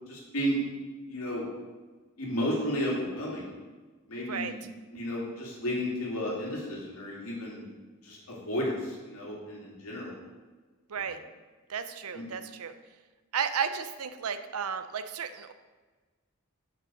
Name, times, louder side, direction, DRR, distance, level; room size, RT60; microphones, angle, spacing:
voice 1, 0.1-0.6 1.1-1.5 2.2-3.5 4.1-4.6 4.9-7.6 8.0-10.1 10.9-11.1 12.1-12.2, equal, 75° left, -4 dB, 2.9 m, -33 dB
voice 2, 11.7-12.7 13.3-15.5, right 7 dB, 80° right, 10 dB, 0.6 m, -33 dB
6.9 x 6.1 x 6.4 m, 1.3 s
head